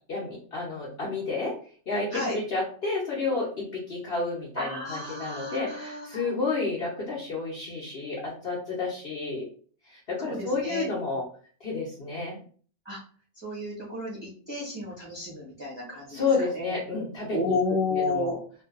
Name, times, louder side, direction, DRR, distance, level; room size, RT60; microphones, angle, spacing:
voice 1, 0.1-1.5 1.9-9.4 9.9-11.2 11.6-12.4 16.1-17.5 17.9-18.4, left 3 dB, 50° left, -5 dB, 0.8 m, -30 dB
voice 2, 4.6-6.4 10.2-10.9 12.8-13.0 13.4-16.7 17.3-18.3, left 2 dB, 20° right, -6 dB, 0.9 m, -32 dB
2.6 x 2.3 x 2.4 m, 0.43 s
omnidirectional pair, 1.5 m